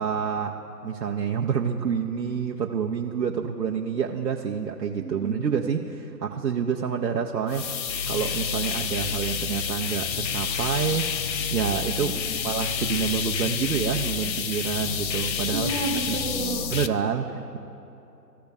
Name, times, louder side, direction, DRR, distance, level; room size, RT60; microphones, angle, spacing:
voice 1, 0.0-7.8 8.1-11.1 11.5-12.2 12.4-15.7 16.1-16.2 16.7-17.6, right 7 dB, 70° right, 1 dB, 0.8 m, -28 dB
sound 1, 7.5-16.9, left 7 dB, 85° left, 0.7 m, -29 dB
voice 2, 15.5-16.7, right 3 dB, 45° right, -3 dB, 1.4 m, -31 dB
15.5 x 6.5 x 2.4 m, 2.8 s
hypercardioid pair, 155°, 49 cm